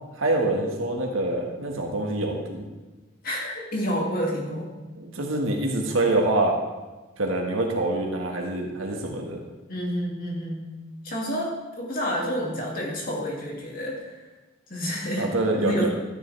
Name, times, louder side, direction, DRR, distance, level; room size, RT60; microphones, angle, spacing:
voice 1, 0.2-2.7 5.0-6.6 7.2-9.4 15.2-15.9, right 2 dB, 75° right, 0 dB, 1.8 m, -25 dB
voice 2, 3.2-4.7 9.7-10.7 11.0-11.5 11.8-14.2 14.7-15.3 15.6-15.9, equal, 45° left, -3 dB, 2.7 m, -29 dB
12.5 x 10.5 x 3.5 m, 1.2 s
head